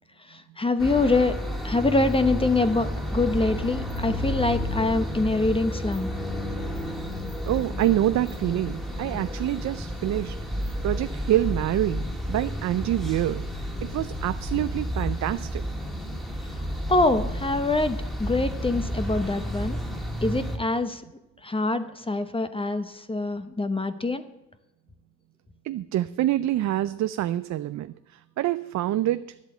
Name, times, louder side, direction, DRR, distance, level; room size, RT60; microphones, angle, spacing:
voice 1, 0.3-1.4 1.6-6.1 16.9-19.8 20.2-21.0 21.4-24.2, left 2 dB, 20° left, 10 dB, 0.8 m, -25 dB
sound 1, 0.8-20.6, equal, ahead, 2.0 m, -31 dB
voice 2, 7.5-10.4 10.8-13.4 13.9-15.6 25.6-29.3, right 13 dB, 65° right, 13 dB, 0.5 m, -26 dB
10.5 x 8.2 x 7.7 m, 0.95 s
cardioid pair, 90°, 30 cm